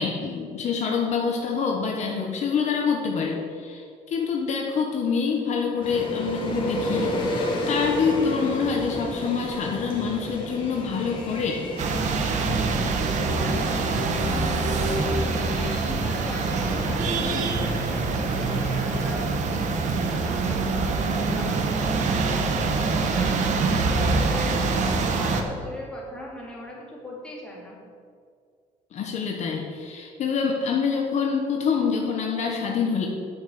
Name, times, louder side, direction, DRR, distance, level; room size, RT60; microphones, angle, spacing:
voice 1, 0.0-11.6 28.9-33.1, left 6 dB, 55° left, 0 dB, 1.3 m, -26 dB
sound 1, 5.8-19.1, left 1 dB, 35° left, 2.3 m, -32 dB
sound 2, 11.8-25.4, right 4 dB, 60° right, 1.1 m, -25 dB
voice 2, 14.2-19.3 19.8-24.6 25.0-27.8, left 1 dB, 5° left, -4 dB, 2.5 m, -39 dB
9.4 x 5.6 x 7.8 m, 2.2 s
cardioid pair, 150°, 14 cm